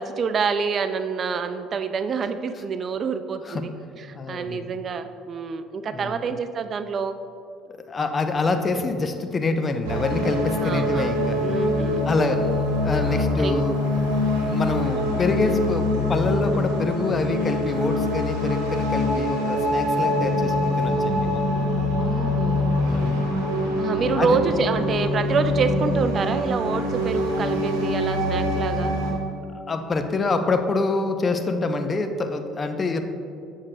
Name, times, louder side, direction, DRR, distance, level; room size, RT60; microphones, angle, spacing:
voice 1, 0.0-3.7 4.0-7.1 10.6-11.1 11.4-12.4 13.0-13.7 15.3-15.6 22.0-22.7 23.8-28.9, right 5 dB, 45° right, 10 dB, 0.3 m, -27 dB
voice 2, 4.1-4.6 5.9-6.2 7.7-11.4 12.1-12.4 12.8-13.8 14.5-21.5 22.8-23.4 24.1-24.4 29.7-33.0, left 3 dB, 35° left, 7 dB, 0.5 m, -26 dB
sound 1, 9.8-29.1, left 1 dB, 85° right, 1.0 m, -24 dB
7.2 x 6.4 x 2.2 m, 2.7 s
hypercardioid pair, 65°, 0 cm